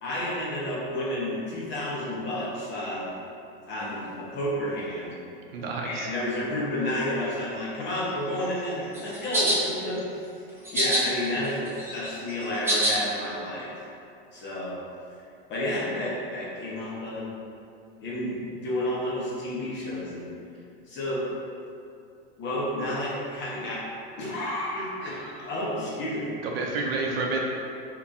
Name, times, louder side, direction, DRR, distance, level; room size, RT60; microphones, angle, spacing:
voice 1, 0.0-3.1 3.7-5.1 5.8-10.0 10.7-13.7 14.3-14.8 15.5-17.3 18.0-20.3 20.9-21.2 22.4-23.8 24.1-26.3, left 1 dB, 40° left, -6 dB, 1.1 m, -31 dB
voice 2, 5.5-6.1 26.4-27.5, right 3 dB, 85° right, 0 dB, 0.6 m, -29 dB
sound 1, 8.9-9.6 10.6-11.0 11.4-12.9, equal, 10° right, 0.7 m, -24 dB
2.9 x 2.6 x 3.6 m, 2.5 s
supercardioid pair, 115°, 29 cm